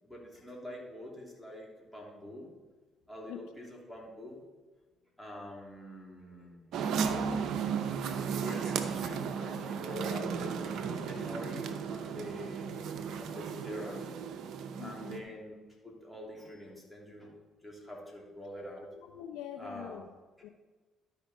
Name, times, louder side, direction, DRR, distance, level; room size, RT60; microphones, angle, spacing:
voice 1, 0.0-2.5 3.1-4.4 5.2-6.6 8.3-12.7 13.2-14.1 14.8-15.6 15.8-17.3 17.6-18.9 19.6-20.0, equal, 10° left, -3 dB, 3.1 m, -45 dB
sound 1, 6.7-15.2, right 6 dB, 70° right, 0.7 m, -35 dB
voice 2, 14.8-15.2 19.0-20.1 20.4-20.5, left 11 dB, 80° left, 7 dB, 0.5 m, -44 dB
12.0 x 5.0 x 4.4 m, 1.3 s
hypercardioid pair, 55°, 0 cm